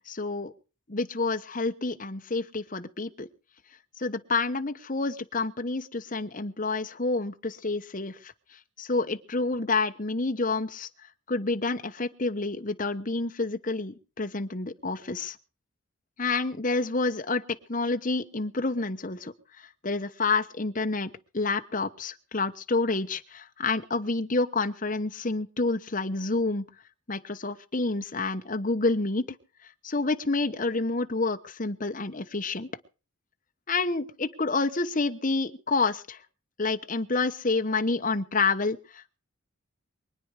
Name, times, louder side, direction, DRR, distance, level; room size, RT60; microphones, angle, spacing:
voice 1, 0.1-0.5 0.9-3.3 4.0-8.3 8.8-10.9 11.3-15.4 16.2-19.3 19.8-26.6 27.1-29.4 29.8-32.7 33.7-36.2 36.6-39.2, left 3 dB, 40° left, 7 dB, 1.1 m, -28 dB
24.0 x 9.4 x 4.9 m, 0.35 s
head